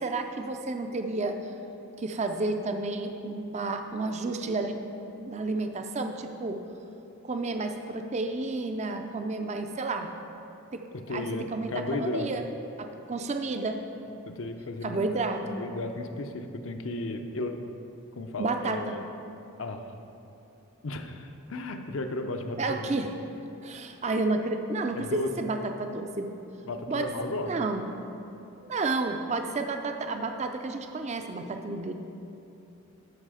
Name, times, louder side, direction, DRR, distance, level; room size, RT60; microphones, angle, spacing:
voice 1, 0.0-1.5 2.0-4.8 5.2-6.6 7.2-10.1 10.7-10.8 11.1-12.4 12.8-13.8 14.8-15.6 18.4-19.0 22.6-23.1 23.6-26.4 26.9-27.1 27.5-27.9 28.6-31.9, right 3 dB, 30° right, 6 dB, 0.4 m, -31 dB
voice 2, 10.9-12.3 14.3-15.0 15.4-17.6 18.2-19.0 19.6-19.9 20.8-22.9 24.9-25.3 26.6-27.5, left 2 dB, 65° left, 6 dB, 0.6 m, -34 dB
13.0 x 5.5 x 4.9 m, 2.8 s
head